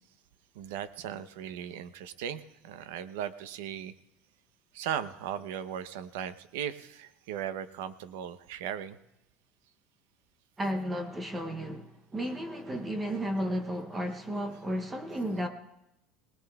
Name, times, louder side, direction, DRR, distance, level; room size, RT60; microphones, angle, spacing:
voice 1, 0.5-3.9 4.7-9.0, right 9 dB, 90° right, 0.6 m, -37 dB
voice 2, 10.6-15.5, equal, 10° right, 0.6 m, -33 dB
23.0 x 19.0 x 2.3 m
cardioid pair, 175°, 0 cm